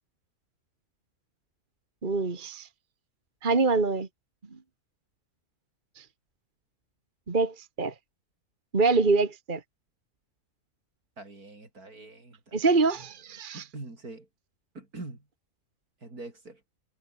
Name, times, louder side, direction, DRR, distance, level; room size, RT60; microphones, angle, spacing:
voice 1, 2.0-2.7 3.4-4.1 6.0-6.1 7.3-7.9 8.7-9.6 12.5-13.6, right 3 dB, 35° right, 1.9 m, -25 dB
voice 2, 11.2-12.9 13.5-14.3 14.7-15.3 16.0-16.6, right 2 dB, 75° right, 5.8 m, -44 dB
omnidirectional pair, 1.6 m